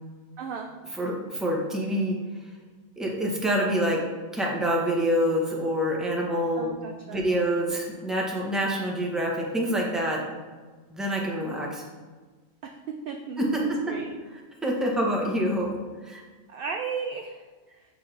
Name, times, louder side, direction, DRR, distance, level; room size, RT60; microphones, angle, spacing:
voice 1, 0.4-0.7 6.6-7.2 12.6-13.4 13.9-14.2 16.5-17.4, right 5 dB, 65° right, 3 dB, 0.5 m, -35 dB
voice 2, 0.9-2.2 3.0-4.0 4.3-6.7 7.1-10.2 10.9-11.8 13.4-13.9 14.3-15.7 16.0-16.2, equal, ahead, -3 dB, 0.9 m, -26 dB
7.7 x 4.6 x 3.3 m, 1.4 s
omnidirectional pair, 1.4 m